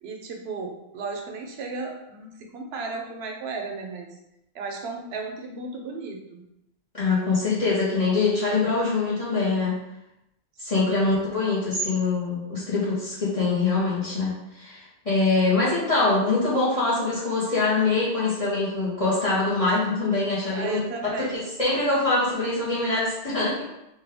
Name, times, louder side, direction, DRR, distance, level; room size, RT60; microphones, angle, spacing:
voice 1, 0.0-4.1 4.5-6.4 20.5-21.3, right 4 dB, 80° right, 3 dB, 0.8 m, -35 dB
voice 2, 6.9-9.8 10.6-20.8 21.1-23.7, left 3 dB, 35° left, -8 dB, 0.8 m, -24 dB
3.1 x 2.2 x 3.3 m, 0.85 s
omnidirectional pair, 1.1 m